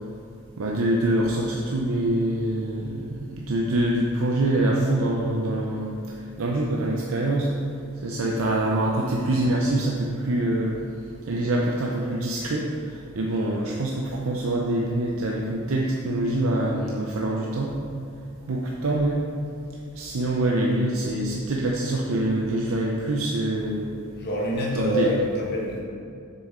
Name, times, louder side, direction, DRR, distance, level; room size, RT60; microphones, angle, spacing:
voice 1, 0.6-6.0 6.4-7.5 8.0-10.8 11.3-12.7 13.1-17.7 18.5-19.2 20.0-23.9 24.8-25.1, right 1 dB, 65° right, -2 dB, 0.6 m, -25 dB
voice 2, 24.2-25.8, equal, 45° left, -2 dB, 1.4 m, -26 dB
7.1 x 7.0 x 3.7 m, 2.5 s
head